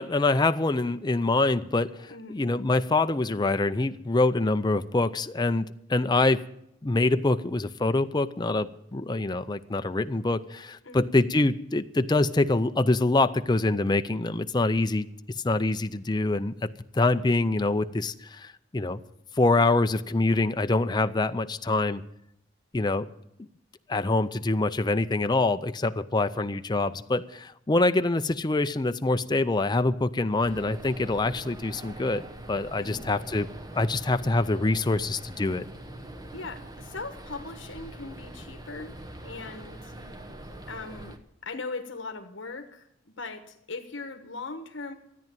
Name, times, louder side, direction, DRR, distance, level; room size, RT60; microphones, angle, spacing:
voice 1, 0.0-6.4 6.8-15.1 15.4-16.7 16.9-19.0 19.4-22.0 22.7-23.1 23.9-33.5 33.7-35.7, left 2 dB, 20° left, 10 dB, 0.5 m, -25 dB
voice 2, 2.1-2.4 10.8-11.0 32.8-33.0 36.3-38.9 39.2-39.9 40.7-42.9 43.2-44.9, left 3 dB, 70° left, 6 dB, 1.3 m, -39 dB
sound 1, 30.4-41.2, right 1 dB, 20° right, 1.1 m, -43 dB
13.5 x 9.5 x 9.1 m, 0.77 s
head